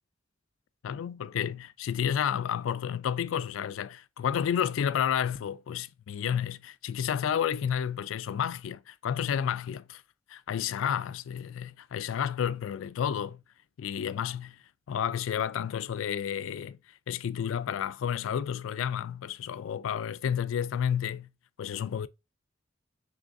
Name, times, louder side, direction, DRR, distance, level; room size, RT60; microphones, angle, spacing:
voice 1, 0.8-10.0 10.3-13.4 13.8-14.6 14.9-16.8 17.1-21.3 21.6-22.1, left 8 dB, 90° left, 0.3 m, -31 dB
6.0 x 3.1 x 2.6 m
head